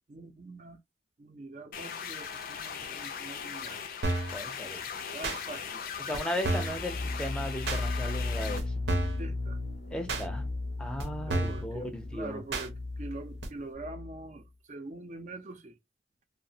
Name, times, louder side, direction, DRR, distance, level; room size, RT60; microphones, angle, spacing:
voice 1, 0.1-0.8 1.2-3.8 5.0-6.0 9.2-9.6 11.3-15.7, right 2 dB, 45° right, 0.5 m, -44 dB
sound 1, 1.7-8.6, left 7 dB, 55° left, 0.4 m, -39 dB
sound 2, 4.0-4.4 5.2-5.4 6.1-6.2 6.4-6.8 7.7-7.8 8.6-8.7 8.9-9.2 10.1-10.2 11.0-11.1 11.3-11.6 12.5-12.7 13.4-13.5, right 2 dB, 85° right, 0.7 m, -30 dB
voice 2, 4.3-4.8 6.0-8.7 9.9-10.5 10.8-12.4, left 1 dB, 5° left, 0.5 m, -36 dB
sound 3, 6.7-14.3, left 2 dB, 85° left, 0.8 m, -36 dB
2.8 x 2.1 x 2.6 m
head